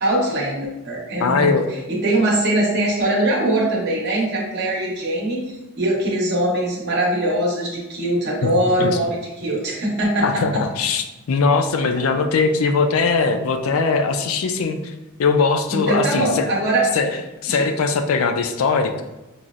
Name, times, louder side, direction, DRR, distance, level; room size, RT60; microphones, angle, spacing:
voice 1, 0.0-1.5 1.9-10.6 11.8-11.9 15.7-16.9 17.5-17.7, right 1 dB, 55° right, -4 dB, 1.0 m, -22 dB
voice 2, 1.2-1.7 8.4-8.5 8.8-9.0 10.2-14.8 15.2-16.5 16.9-17.1 17.4-19.0, left 4 dB, 80° left, 7 dB, 0.4 m, -20 dB
5.4 x 2.0 x 2.4 m, 1.0 s
head